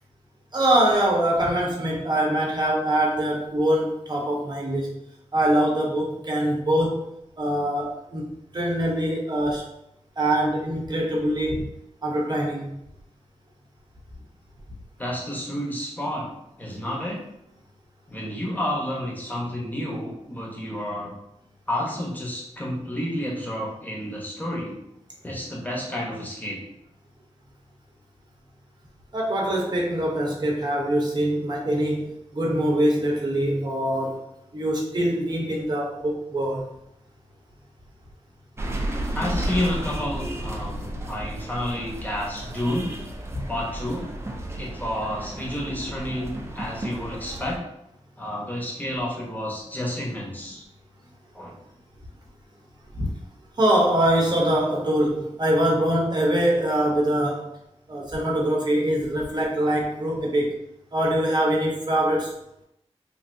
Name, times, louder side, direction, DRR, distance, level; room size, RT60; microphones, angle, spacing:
voice 1, 0.5-5.0 5.3-7.0 7.4-9.7 10.2-11.7 12.0-12.7 29.1-34.2 34.5-36.7 43.3-43.4 53.0-53.1 53.6-57.5 57.9-60.6 60.9-62.3, right 1 dB, 40° right, -2 dB, 0.8 m, -23 dB
voice 2, 15.0-16.3 16.6-17.2 18.1-21.1 21.7-24.7 25.2-26.6 39.1-42.9 43.5-44.1 44.6-47.6 48.2-50.6 51.3-51.5, left 1 dB, 15° left, -3 dB, 0.9 m, -30 dB
sound 1, 38.6-47.6, right 1 dB, 25° right, 0.4 m, -33 dB
3.2 x 2.6 x 2.6 m, 0.81 s
wide cardioid pair, 95°, 12 cm